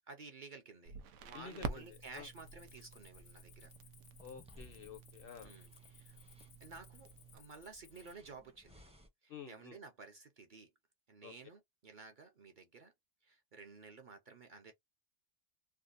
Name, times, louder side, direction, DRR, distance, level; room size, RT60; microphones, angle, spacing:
voice 1, 0.1-3.7 5.4-6.2 6.6-8.8 9.2-10.7 11.1-12.9 13.2-14.7, right 4 dB, 50° right, 0.6 m, -54 dB
Crackle, 0.8-7.4, right 5 dB, 80° right, 0.9 m, -49 dB
voice 2, 1.3-2.3 4.2-5.5 9.3-9.8 11.2-11.3, left 6 dB, 60° left, 0.6 m, -51 dB
Cricket, 1.9-8.1, left 9 dB, 80° left, 1.0 m, -63 dB
sound 1, 2.5-9.1, equal, 10° right, 0.3 m, -63 dB
3.4 x 2.2 x 2.4 m
omnidirectional pair, 1.3 m